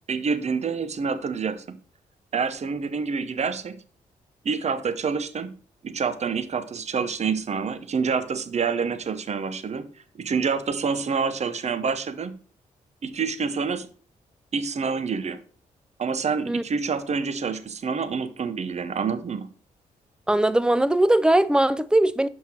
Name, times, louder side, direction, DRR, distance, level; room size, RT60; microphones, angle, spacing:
voice 1, 0.1-1.8 2.3-3.8 4.4-5.6 5.8-9.9 10.1-12.4 13.0-13.9 14.5-15.4 16.0-19.5, right 5 dB, 45° right, 0.8 m, -27 dB
voice 2, 20.3-22.3, right 1 dB, 5° right, 0.5 m, -20 dB
5.8 x 5.6 x 4.4 m
supercardioid pair, 50°, 16 cm